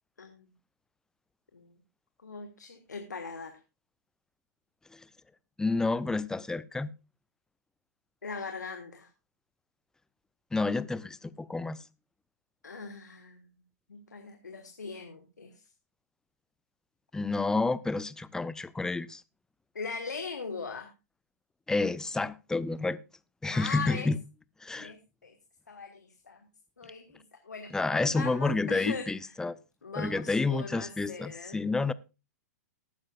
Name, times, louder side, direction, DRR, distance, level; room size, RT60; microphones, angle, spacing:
voice 1, 2.2-3.6 8.2-9.1 12.6-13.5 13.9-15.6 19.7-20.9 23.5-24.1 24.8-25.3 25.7-26.5 26.8-29.1 29.8-31.6, left 4 dB, 80° left, 1.5 m, -40 dB
voice 2, 5.6-6.9 10.5-11.8 17.1-19.2 21.7-23.0 23.4-24.2 24.6-24.9 27.7-29.6 30.0-31.9, left 3 dB, 5° left, 0.5 m, -29 dB
19.0 x 9.6 x 2.4 m
figure-of-eight pair, 105°, 9 cm